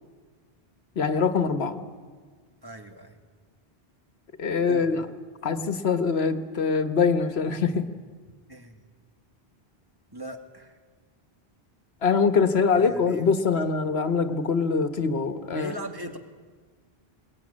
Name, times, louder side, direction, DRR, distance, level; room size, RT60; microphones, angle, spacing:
voice 1, 1.0-1.8 4.4-5.0 5.4-7.9 12.0-15.7, left 5 dB, 90° left, 10 dB, 1.5 m, -23 dB
voice 2, 2.6-3.2 4.7-5.1 8.5-8.8 10.1-10.8 12.7-13.6 15.5-16.2, equal, 20° right, 4 dB, 2.0 m, -40 dB
21.5 x 20.0 x 9.8 m, 1.5 s
omnidirectional pair, 1.0 m